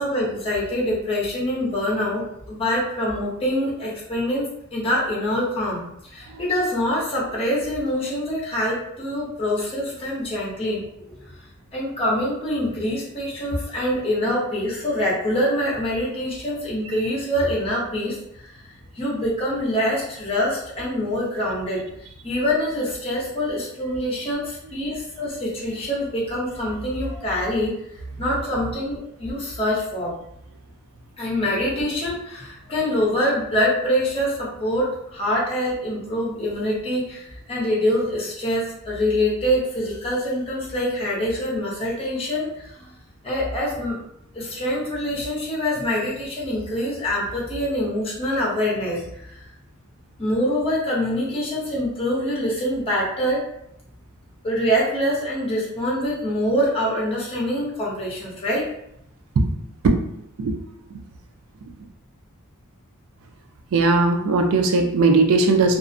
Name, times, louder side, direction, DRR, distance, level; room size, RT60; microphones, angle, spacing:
voice 1, 0.0-5.8 6.1-11.1 11.7-18.2 18.4-18.6 18.9-21.9 22.2-27.7 28.2-30.1 31.2-42.9 43.2-44.0 44.3-49.4 50.2-53.4 54.4-58.7, equal, 25° left, -5 dB, 0.7 m, -25 dB
voice 2, 63.7-65.8, right 3 dB, 80° right, 4 dB, 0.4 m, -18 dB
2.4 x 2.0 x 2.5 m, 0.77 s
head